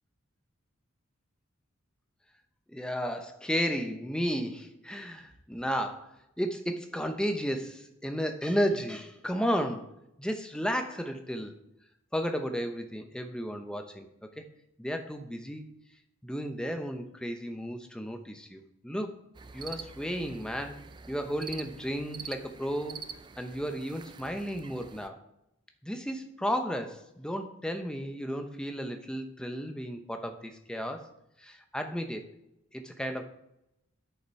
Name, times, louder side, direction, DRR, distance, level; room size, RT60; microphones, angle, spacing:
voice 1, 2.7-6.1 6.4-9.9 10.2-11.6 12.1-14.1 14.4-14.5 14.8-15.7 16.2-19.1 19.5-20.8 21.1-23.0 23.4-25.2 25.8-31.1 31.4-32.3 32.7-33.2, equal, 5° left, 5 dB, 0.7 m, -33 dB
sound 1, 19.3-25.1, right 6 dB, 20° right, 0.3 m, -46 dB
8.2 x 6.9 x 4.7 m, 0.83 s
head